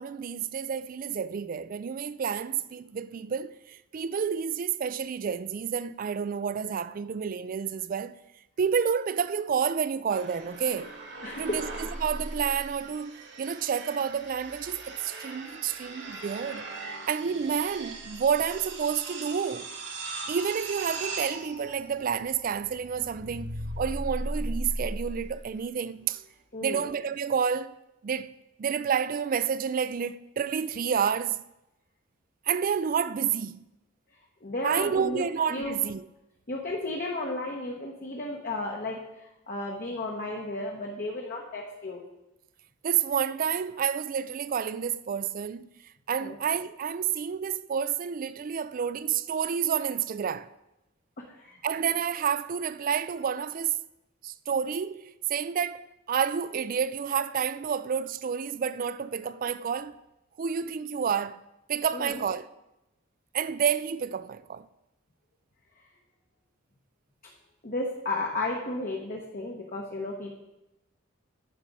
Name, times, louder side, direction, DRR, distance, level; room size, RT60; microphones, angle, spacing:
voice 1, 0.0-8.2 8.6-10.9 11.4-11.7 12.0-16.7 17.1-19.7 20.3-23.5 23.8-26.2 26.6-27.7 28.0-28.3 28.6-31.4 32.5-33.6 34.6-36.1 42.8-45.7 46.1-50.5 51.6-53.8 54.2-59.9 60.4-61.4 61.7-62.5 63.3-64.7, right 7 dB, 45° right, 0.3 m, -29 dB
sound 1, 10.1-25.6, right 2 dB, 60° right, 1.6 m, -38 dB
voice 2, 11.2-11.5 26.5-26.9 34.4-35.8 36.5-42.0 46.2-46.4 51.2-51.6 61.9-62.3 67.6-70.3, left 2 dB, 45° left, 1.1 m, -34 dB
9.9 x 6.1 x 5.3 m
head